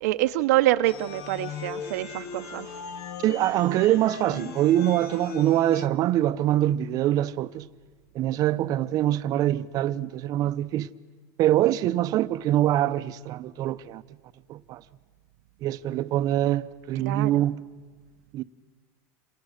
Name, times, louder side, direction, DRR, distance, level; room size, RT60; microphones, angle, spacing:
voice 1, 0.0-2.7 17.0-17.4, right 16 dB, 75° right, 0.8 m, -25 dB
sound 1, 0.8-5.9, left 5 dB, 65° left, 2.1 m, -38 dB
voice 2, 3.2-7.7 8.1-10.9 11.4-14.0 14.5-14.8 15.6-17.6 18.3-18.4, right 13 dB, 45° right, 0.7 m, -24 dB
28.5 x 27.0 x 6.5 m
supercardioid pair, 135°, 9 cm